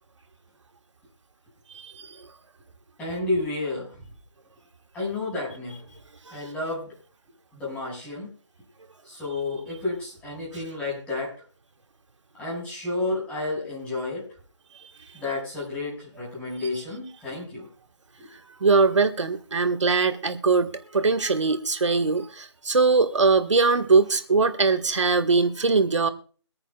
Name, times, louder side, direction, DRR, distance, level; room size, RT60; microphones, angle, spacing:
voice 1, 1.7-2.1 18.6-26.1, right 4 dB, 80° right, 6 dB, 1.6 m, -21 dB
voice 2, 3.0-4.0 4.9-5.8 6.3-6.9 7.5-8.3 9.0-11.3 12.4-14.3 15.1-17.7 18.2-18.3, left 2 dB, 10° left, -5 dB, 5.9 m, -31 dB
24.0 x 9.8 x 2.4 m, 0.40 s
hypercardioid pair, 165°, 15 cm